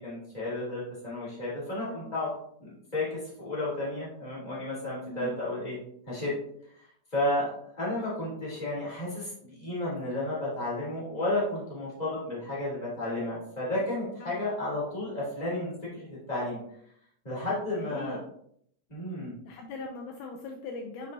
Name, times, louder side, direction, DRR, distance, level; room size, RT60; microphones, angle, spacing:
voice 1, 0.0-2.3 2.6-5.8 6.1-6.4 7.1-7.5 7.7-16.6 17.2-18.2 18.9-19.4, left 1 dB, 15° left, -6 dB, 2.9 m, -32 dB
voice 2, 1.8-2.1 5.0-5.4 14.2-14.5 17.7-18.2 19.5-21.1, left 3 dB, 75° left, 3 dB, 2.1 m, -40 dB
9.4 x 5.1 x 2.7 m, 0.68 s
omnidirectional pair, 3.7 m